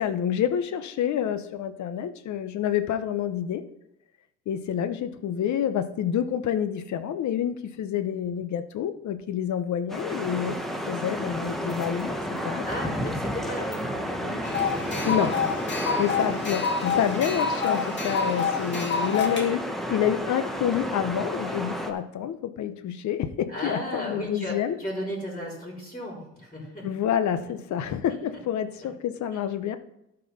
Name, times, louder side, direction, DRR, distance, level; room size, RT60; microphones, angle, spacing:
voice 1, 0.0-3.7 4.5-10.6 10.9-12.6 15.0-15.4 16.0-24.8 26.8-29.8, left 9 dB, 70° left, 12 dB, 0.8 m, -28 dB
sound 1, 9.9-21.9, equal, ahead, 1.1 m, -31 dB
voice 2, 12.6-15.3 15.6-16.0 23.5-26.9 28.3-28.4, equal, 20° left, -4 dB, 3.6 m, -35 dB
sound 2, 14.4-19.5, left 5 dB, 40° left, 2.2 m, -28 dB
12.5 x 4.6 x 5.4 m, 0.87 s
cardioid pair, 90°, 30 cm